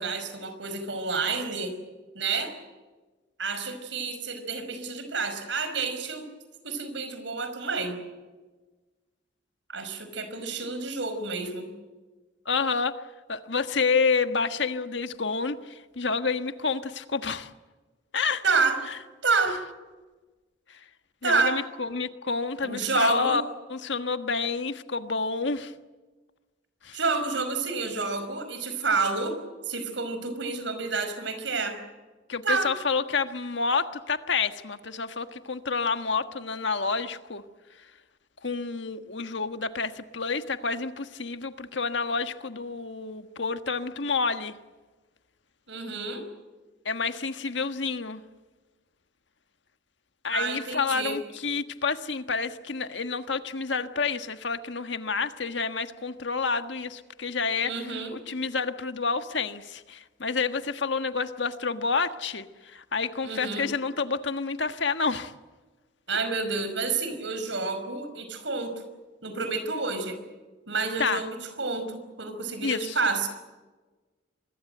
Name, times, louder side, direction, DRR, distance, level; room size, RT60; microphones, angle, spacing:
voice 1, 0.0-1.8 2.1-2.5 3.4-6.3 6.6-8.0 9.7-11.7 18.4-18.8 19.2-19.6 21.2-21.6 22.6-23.4 26.9-29.4 29.7-31.8 32.4-32.7 45.7-46.2 50.3-51.2 57.6-58.1 63.2-63.7 66.1-68.8 69.2-70.2 70.7-73.3, right 4 dB, 75° right, 9 dB, 5.3 m, -29 dB
voice 2, 12.4-13.0 13.3-17.5 18.1-18.4 20.7-20.8 21.2-23.4 23.7-25.7 26.8-27.0 32.3-37.4 38.4-44.5 46.8-48.2 50.2-65.3 71.0-71.2 72.6-73.0, left 4 dB, 75° left, 9 dB, 1.5 m, -29 dB
25.5 x 22.0 x 7.9 m, 1.2 s
head